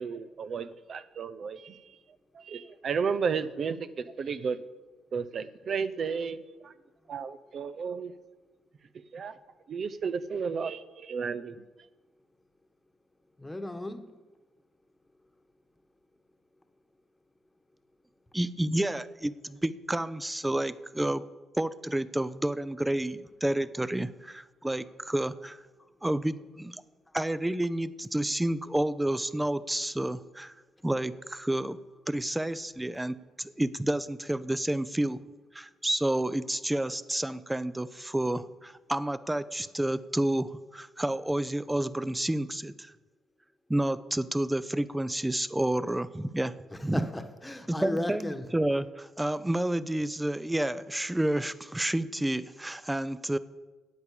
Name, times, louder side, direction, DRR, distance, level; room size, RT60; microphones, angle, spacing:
voice 1, 0.0-2.0 2.3-4.6 5.1-6.7 7.1-8.1 9.1-9.4 9.7-11.6, right 6 dB, 55° right, 11 dB, 0.7 m, -33 dB
voice 2, 13.4-14.1 46.7-48.5, left 1 dB, 10° left, 8 dB, 1.3 m, -35 dB
voice 3, 18.3-21.2 21.5-25.6 26.0-26.8 27.1-30.5 30.8-31.8 32.1-35.2 35.5-42.9 43.7-46.5 46.8-47.1 47.7-53.4, right 1 dB, 10° right, 16 dB, 0.6 m, -30 dB
10.5 x 8.6 x 8.4 m, 1.2 s
cardioid pair, 90°, 0 cm